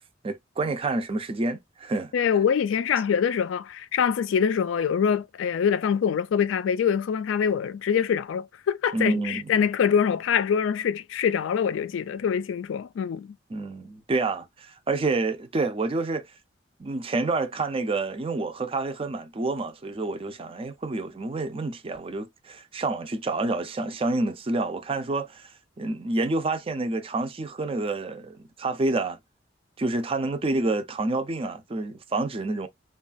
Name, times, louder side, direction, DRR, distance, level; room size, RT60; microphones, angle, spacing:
voice 1, 0.2-2.1 8.9-9.5 13.5-16.2 16.8-25.5 25.8-29.2 29.8-32.7, right 2 dB, 30° right, 0.4 m, -28 dB
voice 2, 2.1-13.4, left 7 dB, 80° left, 0.3 m, -24 dB
3.0 x 2.3 x 2.4 m
head